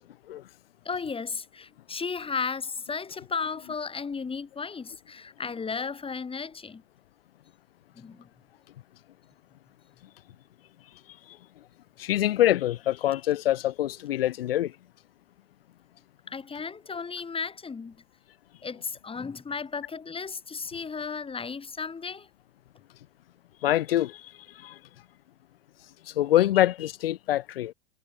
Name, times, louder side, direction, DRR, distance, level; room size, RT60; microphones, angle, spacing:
voice 1, 0.8-6.8 7.9-8.3 16.3-18.0 18.6-22.3, left 5 dB, 20° left, 3.9 m, -34 dB
voice 2, 12.0-14.7 23.6-24.8 26.1-27.7, left 13 dB, 70° left, 3.2 m, -25 dB
hypercardioid pair, 85°, 30 cm